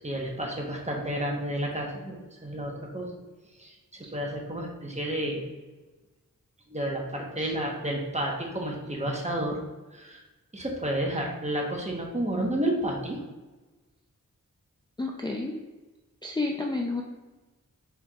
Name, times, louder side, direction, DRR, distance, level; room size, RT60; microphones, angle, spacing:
voice 1, 0.0-3.2 3.6-5.4 6.7-9.6 9.9-10.2 10.5-13.2, right 1 dB, 20° right, 0 dB, 1.0 m, -31 dB
voice 2, 15.0-15.5 16.2-17.0, left 3 dB, 15° left, 0 dB, 0.4 m, -30 dB
4.5 x 4.4 x 2.3 m, 1.2 s
wide cardioid pair, 60°, 32 cm